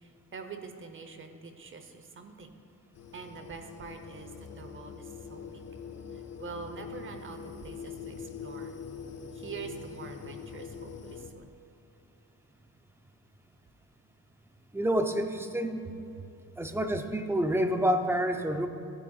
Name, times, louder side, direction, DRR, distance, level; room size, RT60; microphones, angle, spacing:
voice 1, 0.0-2.6 3.1-5.6 6.4-8.8 9.3-11.5 16.2-16.3 16.6-16.7, right 5 dB, 35° right, 6 dB, 0.8 m, -45 dB
sound 1, 2.9-11.3, left 6 dB, 45° left, 0.7 m, -43 dB
voice 2, 14.7-15.8 16.6-18.7, right 1 dB, 5° right, 6 dB, 0.5 m, -28 dB
15.5 x 8.8 x 2.4 m, 2.8 s
cardioid pair, 140°, 34 cm